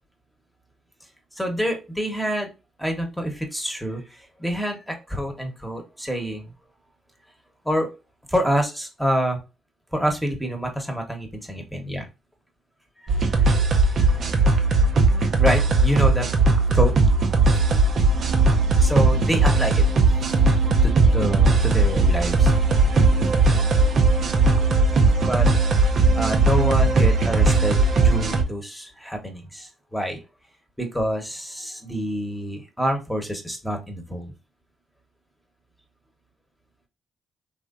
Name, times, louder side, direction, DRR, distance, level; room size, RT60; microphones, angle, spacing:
voice 1, 1.4-2.5 2.8-6.5 7.6-7.9 8.3-9.4 9.9-12.1 14.0-14.1 15.4-16.3 16.7-16.9 17.5-17.6 18.8-19.8 20.8-22.5 22.8-22.9 25.2-25.5 26.1-30.2 30.8-34.3, equal, ahead, 3 dB, 1.1 m, -27 dB
sound 1, 13.1-28.4, right 3 dB, 60° right, 0.5 m, -18 dB
3.3 x 2.5 x 2.4 m, 0.28 s
supercardioid pair, 50°, 0 cm